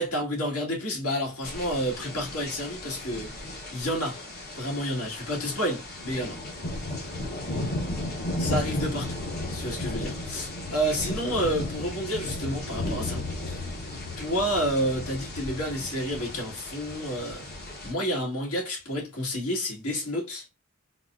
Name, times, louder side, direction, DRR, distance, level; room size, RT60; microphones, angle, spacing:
voice 1, 0.0-3.3 3.7-4.2 4.5-6.4 8.4-13.6 14.2-17.4 17.8-20.5, equal, 75° left, 1.6 m, -30 dB
sound 1, 1.4-17.9, left 2 dB, 45° left, 1.0 m, -35 dB
3.9 x 2.2 x 2.4 m
head